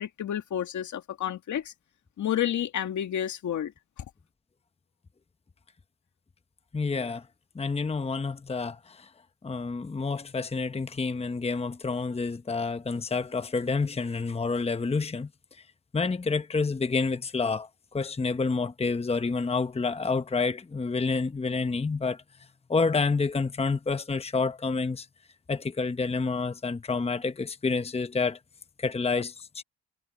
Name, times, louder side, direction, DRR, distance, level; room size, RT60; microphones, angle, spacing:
voice 1, 0.0-1.7 2.2-3.7, left 10 dB, 75° left, 2.1 m, -30 dB
voice 2, 6.7-7.3 7.5-9.1 9.4-15.3 15.9-22.2 22.7-25.1 25.5-28.4 28.8-29.6, left 4 dB, 20° left, 0.9 m, -28 dB
cardioid pair, 80°, 30 cm